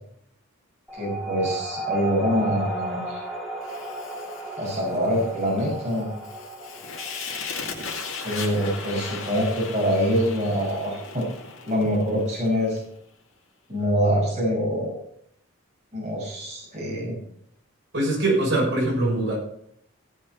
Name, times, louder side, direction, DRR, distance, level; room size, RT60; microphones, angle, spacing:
sound 1, 0.9-11.8, right 2 dB, ahead, 3.4 m, -36 dB
voice 1, 0.9-3.2 4.6-6.1 8.2-11.3 11.7-12.8 13.7-14.9 15.9-17.2, equal, 35° right, -5 dB, 5.8 m, -25 dB
Fire, 3.6-12.8, left 5 dB, 70° left, 2.3 m, -37 dB
voice 2, 17.9-19.3, right 2 dB, 55° right, -3 dB, 6.2 m, -22 dB
16.5 x 6.4 x 5.4 m, 0.68 s
head